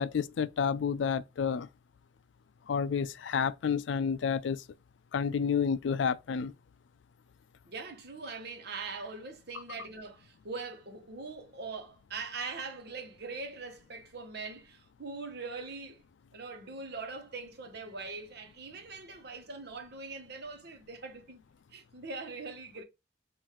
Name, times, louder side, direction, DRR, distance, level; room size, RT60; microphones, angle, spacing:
voice 1, 0.0-1.7 2.7-4.6 5.1-6.5, left 6 dB, 80° left, 0.4 m, -30 dB
voice 2, 7.6-16.0 16.3-21.4 21.7-22.8, right 4 dB, 60° right, 1.0 m, -42 dB
5.8 x 2.6 x 3.1 m
head